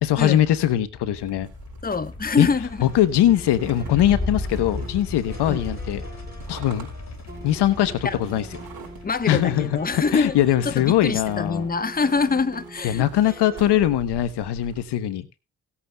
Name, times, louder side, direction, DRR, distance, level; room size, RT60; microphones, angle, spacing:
voice 1, 0.0-1.5 2.4-2.5 2.8-6.0 6.5-6.9 7.4-8.5 9.3-11.7 12.8-15.3, left 12 dB, 70° left, 1.0 m, -21 dB
sound 1, 0.9-11.4, left 2 dB, 40° left, 2.7 m, -36 dB
sound 2, 1.2-14.9, right 7 dB, 60° right, 4.5 m, -46 dB
voice 2, 1.8-2.9 5.5-5.6 8.0-8.2 9.0-10.4 10.6-13.0, left 4 dB, 20° left, 1.1 m, -24 dB
sound 3, 2.9-13.9, right 1 dB, 25° right, 6.0 m, -43 dB
18.5 x 8.5 x 2.3 m
supercardioid pair, 50°, 42 cm